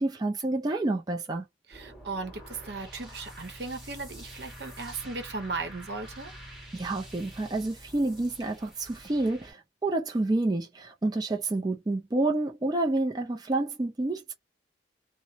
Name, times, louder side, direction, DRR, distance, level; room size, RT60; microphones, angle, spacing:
voice 1, 0.0-1.4 6.7-14.3, right 2 dB, 20° right, 0.4 m, -29 dB
sound 1, 1.7-9.5, equal, ahead, 1.4 m, -47 dB
voice 2, 1.7-6.3, right 3 dB, 70° right, 0.8 m, -37 dB
2.9 x 2.0 x 2.7 m
head